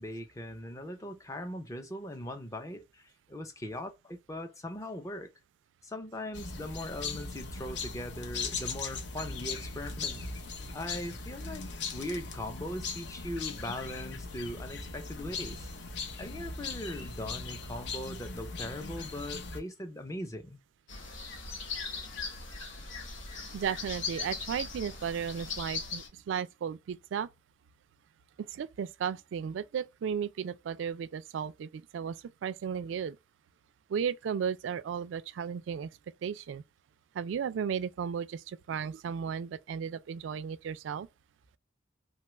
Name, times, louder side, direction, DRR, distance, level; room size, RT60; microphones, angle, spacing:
voice 1, 0.0-5.3 5.8-10.3 10.7-15.7 16.2-20.6, left 1 dB, 15° left, 0.5 m, -40 dB
sound 1, 6.3-19.6, left 4 dB, 65° left, 0.6 m, -39 dB
sound 2, 20.9-26.1, left 4 dB, 85° left, 0.9 m, -39 dB
voice 2, 23.5-27.3 28.4-33.2 33.9-35.9 36.2-36.6 37.1-41.1, right 7 dB, 80° right, 0.3 m, -35 dB
3.0 x 2.3 x 2.9 m
head